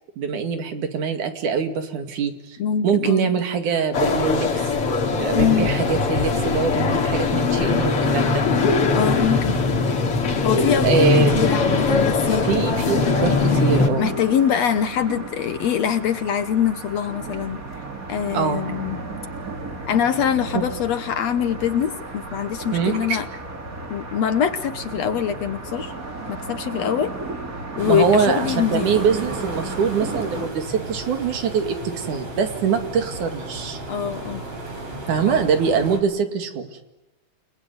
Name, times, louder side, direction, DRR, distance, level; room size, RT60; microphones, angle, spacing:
voice 1, 0.2-2.6 2.8-4.5 5.1-8.4 10.8-11.4 12.4-14.1 18.3-18.6 22.7-23.2 27.9-33.8 35.1-36.7, right 6 dB, 65° right, 7 dB, 3.7 m, -23 dB
voice 2, 2.6-3.3 5.3-5.7 8.9-9.6 10.4-12.4 14.0-17.6 18.1-19.0 19.9-23.3 23.9-25.9 26.3-27.1 27.8-28.9 33.9-34.5 35.3-35.5, left 8 dB, 65° left, 11 dB, 2.0 m, -23 dB
sound 1, 3.9-13.9, left 4 dB, 45° left, 3.0 m, -21 dB
sound 2, 11.0-30.5, right 3 dB, 25° right, 2.7 m, -34 dB
sound 3, 27.8-36.0, right 2 dB, 45° right, 6.3 m, -34 dB
29.5 x 20.5 x 9.6 m, 1.0 s
omnidirectional pair, 3.8 m